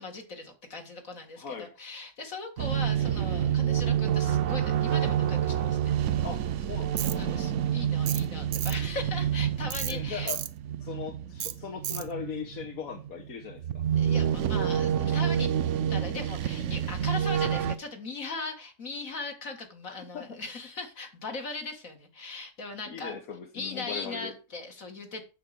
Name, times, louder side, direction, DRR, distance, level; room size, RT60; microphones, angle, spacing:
voice 1, 0.0-5.8 6.1-6.2 7.0-10.3 14.0-15.5 15.9-23.1 23.5-25.2, left 3 dB, 70° left, 4 dB, 2.4 m, -39 dB
voice 2, 1.4-1.7 6.2-7.2 9.9-10.4 10.8-13.8 19.9-20.4 22.9-24.3, left 7 dB, 85° left, 3 dB, 1.6 m, -39 dB
sound 1, 2.6-17.7, right 9 dB, 65° right, 0.9 m, -28 dB
Tools, 7.0-7.2 8.1-8.3 8.5-8.8 9.7-9.9 10.3-10.5 11.4-11.5 11.8-12.1, right 10 dB, 90° right, 1.2 m, -33 dB
8.6 x 7.4 x 5.1 m, 0.33 s
omnidirectional pair, 1.5 m